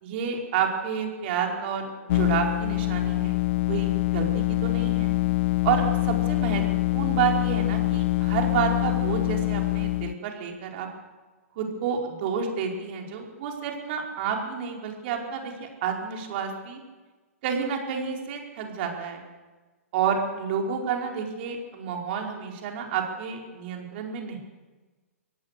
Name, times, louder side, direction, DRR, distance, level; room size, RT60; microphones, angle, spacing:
voice 1, 0.0-5.1 5.6-6.6 6.9-10.9 11.6-16.8 17.4-19.2 19.9-24.4, right 7 dB, 45° right, 1 dB, 4.7 m, -29 dB
sound 1, 2.1-10.1, left 18 dB, 50° left, 0.5 m, -25 dB
24.0 x 17.5 x 6.6 m, 1.3 s
hypercardioid pair, 120°, 8 cm